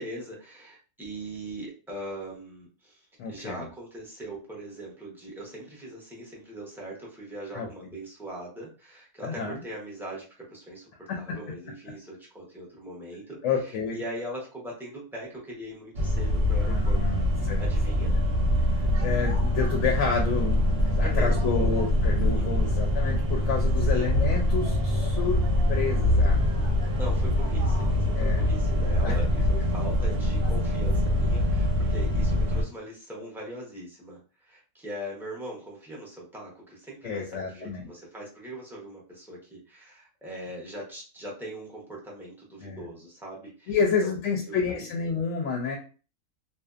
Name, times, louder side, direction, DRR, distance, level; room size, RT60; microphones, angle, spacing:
voice 1, 0.0-3.0 3.3-17.0 17.6-18.1 21.0-21.7 22.3-22.7 23.9-24.1 27.0-43.7 44.0-44.1 44.5-44.9, right 1 dB, ahead, -5 dB, 0.5 m, -41 dB
voice 2, 3.2-3.7 7.5-7.7 9.2-9.5 11.1-11.4 13.4-14.0 16.6-17.6 18.6-18.7 19.0-25.4 25.7-26.4 28.1-28.4 29.0-29.1 30.1-30.2 31.8-31.9 37.0-37.9 42.6-42.8 43.7-45.8, left 5 dB, 70° left, 1 dB, 0.9 m, -29 dB
sound 1, 15.9-32.6, left 1 dB, 55° right, 0.9 m, -24 dB
2.6 x 2.1 x 2.3 m, 0.36 s
omnidirectional pair, 1.4 m